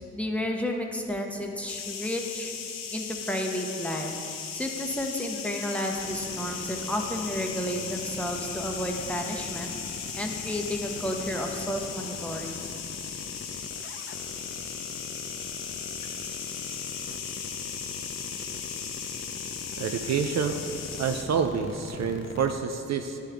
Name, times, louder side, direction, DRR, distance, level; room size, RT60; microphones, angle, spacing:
voice 1, 0.1-2.5 2.9-4.1 4.5-9.7 10.2-12.6, equal, 5° left, 1 dB, 0.8 m, -32 dB
sound 1, 1.7-21.2, left 6 dB, 85° left, 0.6 m, -37 dB
sound 2, 5.3-22.5, left 5 dB, 40° left, 0.5 m, -41 dB
voice 2, 19.8-20.6 21.0-23.2, right 6 dB, 55° right, 6 dB, 0.4 m, -28 dB
10.0 x 3.7 x 3.4 m, 2.6 s
supercardioid pair, 45°, 32 cm